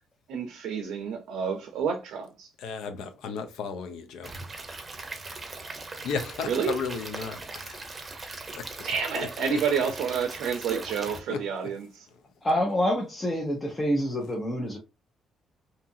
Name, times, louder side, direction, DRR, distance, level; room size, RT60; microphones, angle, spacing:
voice 1, 0.3-2.5 6.4-6.8 8.8-12.1, right 6 dB, 85° right, 0.5 m, -29 dB
voice 2, 2.6-4.3 6.0-8.1 8.5-8.7 9.1-9.6 11.3-11.4, left 5 dB, 85° left, 0.5 m, -34 dB
Stream / Liquid, 4.2-11.2, right 3 dB, 25° right, 0.7 m, -40 dB
voice 3, 12.4-14.8, equal, 20° left, 0.7 m, -27 dB
2.8 x 2.4 x 2.6 m
cardioid pair, 90°, 0 cm